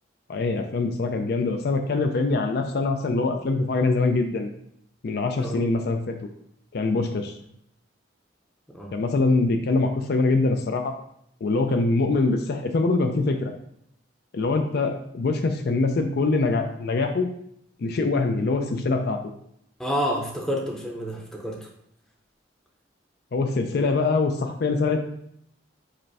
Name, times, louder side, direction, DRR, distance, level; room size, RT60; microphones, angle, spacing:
voice 1, 0.3-4.5 5.0-6.2 6.7-7.3 8.9-10.9 11.4-13.5 14.3-17.3 17.8-19.2 23.3-25.0, left 3 dB, 55° left, 5 dB, 0.4 m, -23 dB
voice 2, 19.8-21.7, equal, 5° left, -1 dB, 0.6 m, -29 dB
4.9 x 2.1 x 4.7 m, 0.72 s
head